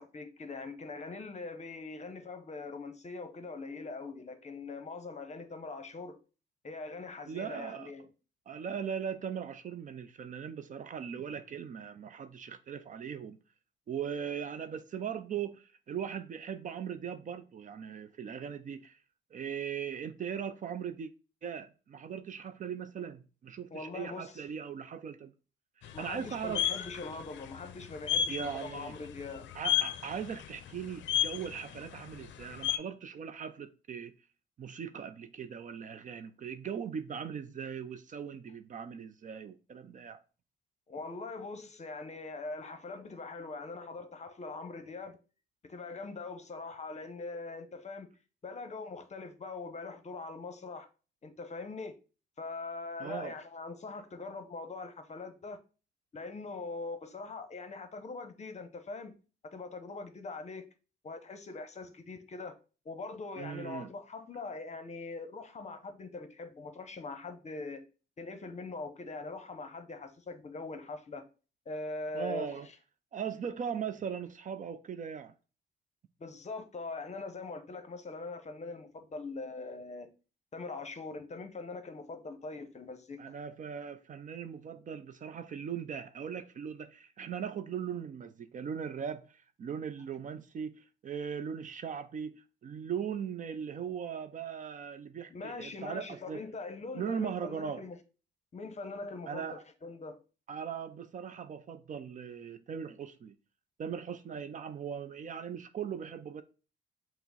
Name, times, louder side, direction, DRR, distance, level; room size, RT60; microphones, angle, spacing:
voice 1, 0.0-6.2 6.6-8.1 23.7-24.3 25.9-29.5 40.9-45.2 45.6-48.1 48.4-50.9 51.2-52.0 52.4-55.6 56.1-59.1 59.5-60.6 61.0-62.6 62.8-67.8 68.2-71.2 71.7-72.6 76.2-80.1 80.5-83.3 95.3-98.0 98.5-100.2, left 3 dB, 35° left, 0.7 m, -42 dB
voice 2, 7.3-7.9 8.5-13.4 13.9-19.0 19.3-21.1 21.4-25.3 25.8-26.6 28.3-28.9 29.5-34.1 34.6-40.2 53.0-53.4 63.4-63.9 72.1-72.7 73.1-75.3 83.2-96.4 96.9-97.9 99.3-99.6 100.5-103.4 103.8-106.4, right 7 dB, 40° right, 0.4 m, -39 dB
sound 1, 25.8-32.8, left 10 dB, 70° left, 0.5 m, -34 dB
5.7 x 2.0 x 4.0 m
cardioid pair, 90°, 20 cm